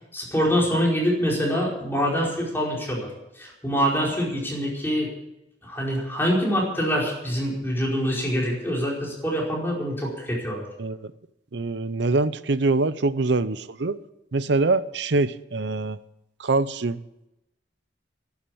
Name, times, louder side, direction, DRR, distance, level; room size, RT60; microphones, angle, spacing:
voice 1, 0.1-3.1 3.4-5.1 5.6-10.6, equal, 15° left, 4.8 m, -25 dB
voice 2, 10.8-11.1 11.5-14.0 14.3-16.0 16.4-17.0, right 3 dB, 70° right, 0.7 m, -24 dB
11.5 x 11.0 x 8.6 m
head